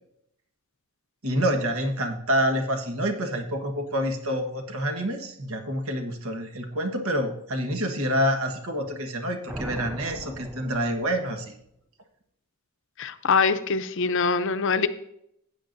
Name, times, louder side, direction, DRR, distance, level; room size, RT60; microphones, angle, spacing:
voice 1, 1.2-11.5, equal, 65° right, 3 dB, 1.4 m, -27 dB
sound 1, 9.5-11.4, right 1 dB, 5° right, 0.4 m, -39 dB
voice 2, 13.0-14.9, left 5 dB, 55° left, 11 dB, 0.6 m, -23 dB
15.0 x 8.9 x 2.6 m, 0.76 s
head